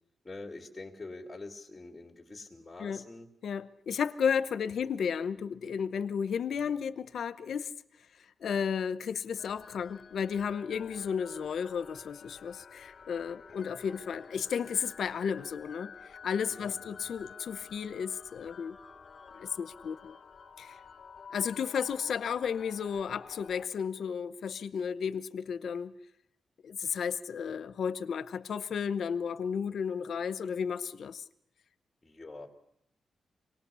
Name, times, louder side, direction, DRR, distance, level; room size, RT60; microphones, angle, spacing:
voice 1, 0.2-3.3 16.5-17.1 32.0-32.5, left 2 dB, 15° left, -1 dB, 2.7 m, -45 dB
voice 2, 3.4-7.7 8.4-18.8 19.3-20.2 20.6-20.8 21.3-25.9 26.6-31.2, left 7 dB, 70° left, 14 dB, 0.8 m, -33 dB
sound 1, 9.4-23.7, left 6 dB, 50° left, 1.3 m, -51 dB
26.0 x 19.0 x 7.0 m, 0.73 s
cardioid pair, 110°, 0 cm